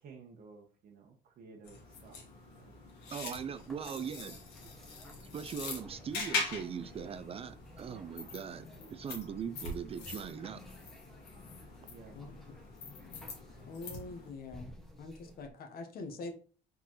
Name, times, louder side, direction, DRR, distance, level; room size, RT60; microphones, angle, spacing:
voice 1, 0.0-2.2 2.5-3.2 11.9-12.2, right 4 dB, 60° right, 0.9 m, -55 dB
sound 1, 1.6-14.3, left 3 dB, 85° left, 1.6 m, -43 dB
voice 2, 3.1-4.4 5.3-10.6, right 7 dB, 35° right, 0.4 m, -40 dB
sound 2, 3.5-15.5, equal, ahead, 1.0 m, -55 dB
voice 3, 13.7-14.7 15.0-16.3, left 3 dB, 60° left, 1.0 m, -44 dB
4.5 x 3.9 x 3.0 m
cardioid pair, 110°, 17 cm